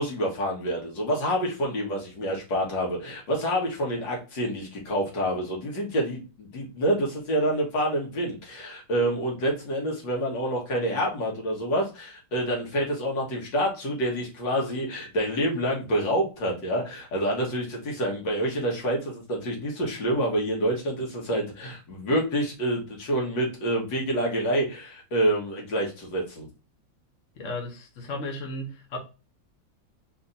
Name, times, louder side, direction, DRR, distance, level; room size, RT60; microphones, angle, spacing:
voice 1, 0.0-26.5, right 1 dB, 70° left, 2.2 m, -27 dB
voice 2, 27.3-29.0, left 1 dB, 50° left, 1.1 m, -34 dB
4.3 x 2.9 x 3.9 m
omnidirectional pair, 2.1 m